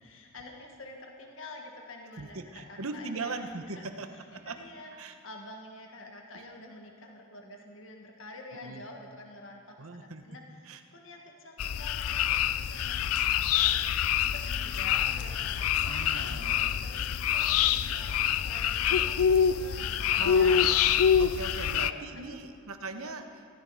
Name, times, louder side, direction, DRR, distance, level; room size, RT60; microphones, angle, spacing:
voice 1, 0.0-4.9 5.2-13.9 14.3-21.9 23.0-23.2, left 2 dB, 65° left, 1 dB, 1.7 m, -48 dB
voice 2, 2.2-4.6 5.0-5.2 6.3-6.4 8.6-8.8 9.8-10.2 10.6-10.8 15.8-16.8 20.2-23.5, right 3 dB, 85° right, 7 dB, 1.1 m, -40 dB
sound 1, 11.6-21.9, left 8 dB, 85° left, 0.4 m, -26 dB
16.0 x 14.5 x 4.9 m, 2.1 s
head